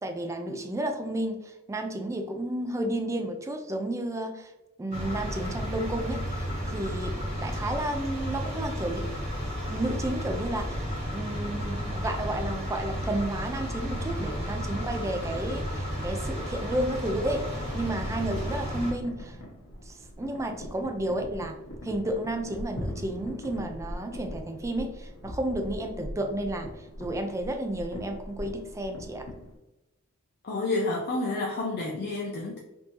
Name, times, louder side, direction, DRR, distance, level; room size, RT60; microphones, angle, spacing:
voice 1, 0.0-4.5 4.8-9.1 9.7-19.4 19.9-21.6 21.8-29.3, right 1 dB, 15° right, 5 dB, 0.3 m, -32 dB
sound 1, 4.9-18.9, equal, 30° right, 1.3 m, -33 dB
sound 2, 18.2-29.5, equal, 75° left, 0.9 m, -41 dB
voice 2, 30.4-32.6, left 2 dB, 50° left, -1 dB, 0.4 m, -29 dB
3.4 x 2.6 x 2.9 m, 0.98 s
head